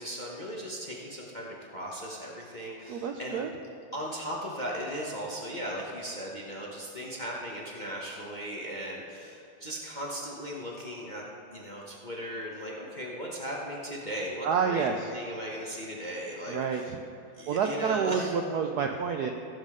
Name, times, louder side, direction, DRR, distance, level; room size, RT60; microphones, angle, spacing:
voice 1, 0.0-3.4 3.9-11.2 11.5-16.9 17.4-18.3, equal, 35° left, -4 dB, 0.7 m, -37 dB
voice 2, 2.9-3.5 14.4-15.1 16.5-17.0 17.5-19.3, right 6 dB, 90° right, 4 dB, 0.8 m, -29 dB
15.5 x 7.4 x 3.7 m, 2.9 s
omnidirectional pair, 2.3 m